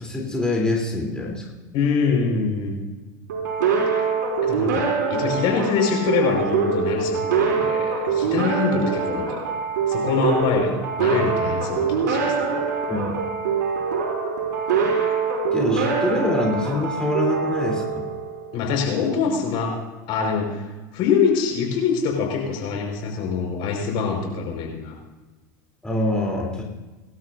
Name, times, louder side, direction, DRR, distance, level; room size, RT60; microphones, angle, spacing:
voice 1, 0.0-1.4 12.9-13.2 15.5-18.0 25.8-26.6, left 2 dB, 10° left, -2 dB, 3.4 m, -25 dB
voice 2, 1.7-2.8 4.4-9.4 9.9-12.6 18.5-19.7 20.1-20.6 20.9-24.9, left 5 dB, 55° left, 1 dB, 5.0 m, -24 dB
sound 1, 3.3-18.7, right 5 dB, 80° right, 4.4 m, -24 dB
24.0 x 12.5 x 2.7 m, 1.2 s
hypercardioid pair, 95°, 10 cm